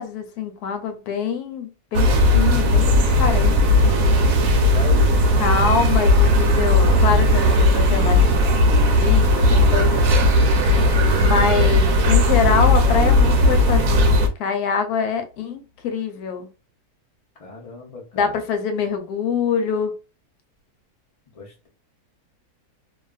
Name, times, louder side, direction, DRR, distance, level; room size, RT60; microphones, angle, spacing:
voice 1, 0.0-4.1 5.4-10.0 11.1-14.1 14.4-16.5 18.1-19.9, left 6 dB, 85° left, 1.1 m, -25 dB
sound 1, 1.9-14.3, left 1 dB, 70° right, 0.9 m, -16 dB
voice 2, 3.8-5.4 17.4-18.4 21.3-21.7, left 3 dB, 70° left, 0.3 m, -36 dB
2.6 x 2.3 x 2.3 m
omnidirectional pair, 1.6 m